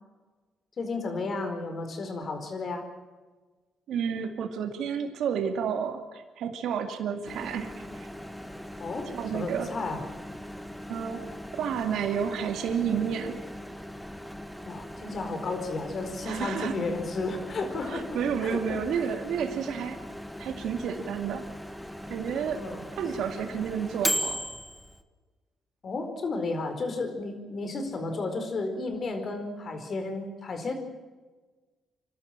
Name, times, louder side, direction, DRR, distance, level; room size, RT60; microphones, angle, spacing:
voice 1, 0.8-2.9 8.8-10.0 14.6-18.8 22.5-22.9 25.8-30.7, left 3 dB, 45° left, 6 dB, 4.5 m, -33 dB
voice 2, 3.9-8.1 9.1-9.7 10.9-13.4 16.2-16.7 17.9-20.0 20.4-21.4 22.1-22.6 23.0-24.4, right 7 dB, 75° right, 6 dB, 2.3 m, -31 dB
Microwave oven, 7.2-25.0, equal, ahead, 1.6 m, -39 dB
28.0 x 12.5 x 9.0 m, 1.3 s
cardioid pair, 90°, 0 cm